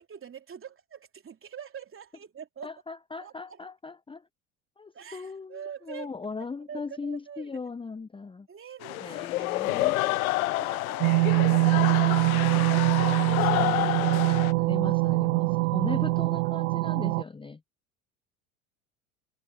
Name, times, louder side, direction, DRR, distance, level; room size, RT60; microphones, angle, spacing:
voice 1, 0.0-2.8 3.2-3.6 4.9-6.1 6.4-7.6 8.5-9.5 9.7-14.1, right 8 dB, 30° right, 3.4 m, -45 dB
voice 2, 2.6-4.2 4.8-8.5 9.0-10.0 14.3-17.6, left 4 dB, 10° left, 0.9 m, -38 dB
sound 1, 8.8-14.5, left 19 dB, 80° left, 0.6 m, -28 dB
sound 2, 11.0-17.2, right 27 dB, 70° right, 0.7 m, -24 dB
hypercardioid pair, 75°, 42 cm